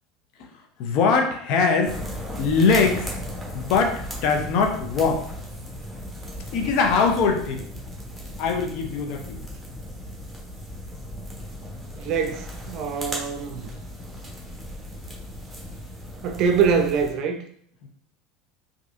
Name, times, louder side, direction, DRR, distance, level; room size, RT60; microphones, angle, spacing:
voice 1, 0.8-2.0 2.4-3.1 3.5-5.2 6.5-7.6 8.4-9.4 17.8-17.9, left 5 dB, 50° left, 3 dB, 0.7 m, -22 dB
sound 1, 1.8-17.1, equal, 5° right, 1.1 m, -36 dB
voice 2, 11.9-13.7 16.2-17.4, right 6 dB, 45° right, 6 dB, 0.5 m, -24 dB
4.7 x 2.8 x 2.5 m, 0.62 s
figure-of-eight pair, 75°, 0 cm